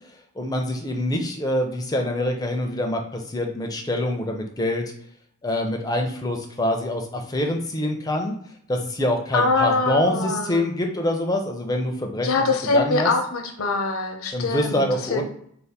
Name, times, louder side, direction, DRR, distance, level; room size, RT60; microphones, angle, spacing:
voice 1, 0.4-4.9 5.4-8.3 8.7-12.3 12.7-13.1 14.3-15.2, left 1 dB, 15° left, 2 dB, 0.4 m, -25 dB
voice 2, 9.3-10.6 12.2-15.2, left 3 dB, 70° left, 4 dB, 0.6 m, -23 dB
3.3 x 2.1 x 4.1 m, 0.66 s
head